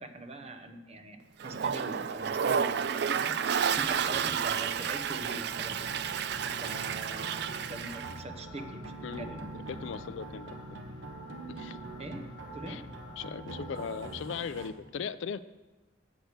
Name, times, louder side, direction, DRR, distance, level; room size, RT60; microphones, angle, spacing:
voice 1, 0.0-6.0 6.4-9.5 12.0-12.8, right 1 dB, 30° right, 7 dB, 0.7 m, -43 dB
Toilet flush, 1.4-8.2, right 7 dB, 55° right, 0.4 m, -31 dB
sound 1, 3.7-14.4, left 2 dB, 20° left, 1.6 m, -50 dB
sound 2, 5.5-14.7, right 2 dB, 75° right, 1.0 m, -45 dB
voice 2, 9.0-9.3 9.7-10.8 11.6-11.8 12.7-12.8 13.2-15.4, left 6 dB, 65° left, 15 dB, 0.4 m, -38 dB
8.0 x 6.4 x 8.0 m, 1.2 s
head